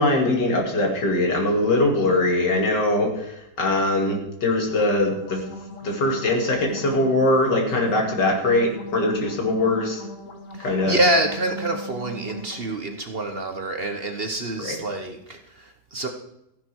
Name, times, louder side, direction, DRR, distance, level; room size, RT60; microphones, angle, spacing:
voice 1, 0.0-5.4 5.8-10.0 10.6-11.0 14.6-14.8, left 2 dB, 80° left, 2 dB, 3.1 m, -22 dB
sound 1, 4.6-12.6, equal, 50° left, 1.8 m, -39 dB
voice 2, 10.5-16.1, right 1 dB, 40° right, 5 dB, 1.2 m, -26 dB
14.5 x 10.0 x 4.7 m, 0.84 s
omnidirectional pair, 1.8 m